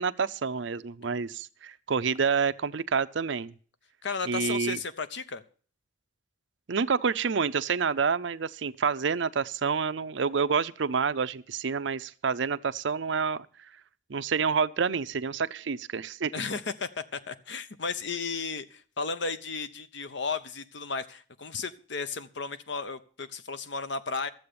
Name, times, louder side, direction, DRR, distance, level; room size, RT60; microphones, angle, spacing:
voice 1, 0.0-3.5 4.3-4.8 6.7-13.5 14.1-16.3, right 5 dB, 70° right, 0.6 m, -28 dB
voice 2, 4.0-5.4 16.3-24.3, left 4 dB, 70° left, 0.9 m, -34 dB
13.0 x 7.7 x 6.9 m
head